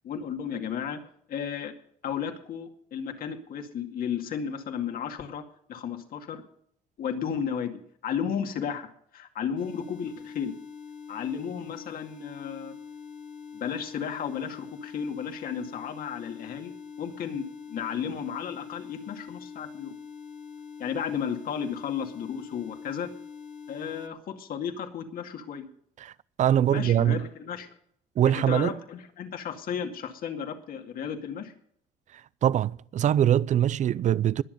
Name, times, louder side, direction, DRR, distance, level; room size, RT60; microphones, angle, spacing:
voice 1, 0.0-1.0 1.3-1.7 2.0-5.4 5.7-6.4 7.0-10.5 11.1-12.7 13.5-19.9 20.8-23.1 23.7-25.7 26.7-27.7 28.3-31.5, left 7 dB, 60° left, 2.3 m, -33 dB
sound 1, 9.6-24.1, left 6 dB, 45° left, 2.5 m, -44 dB
voice 2, 26.4-27.2 28.2-28.8 32.1-34.4, right 10 dB, 45° right, 0.5 m, -23 dB
21.0 x 7.4 x 5.3 m
cardioid pair, 110°, 17 cm